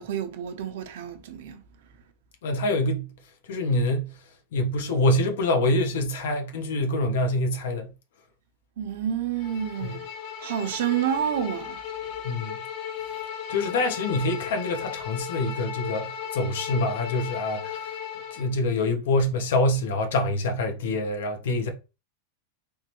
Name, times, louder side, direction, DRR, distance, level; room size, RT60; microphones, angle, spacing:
voice 1, 0.0-1.6 8.8-10.0 10.4-11.8, right 9 dB, 65° right, 0.8 m, -29 dB
voice 2, 2.4-3.1 3.5-4.1 4.5-7.9 9.8-9.9 12.2-12.6 13.5-17.9 18.3-21.7, left 2 dB, 75° left, 1.1 m, -25 dB
Bowed string instrument, 9.4-18.5, left 8 dB, 45° left, 0.9 m, -36 dB
3.6 x 3.3 x 3.0 m
supercardioid pair, 160°, 0 cm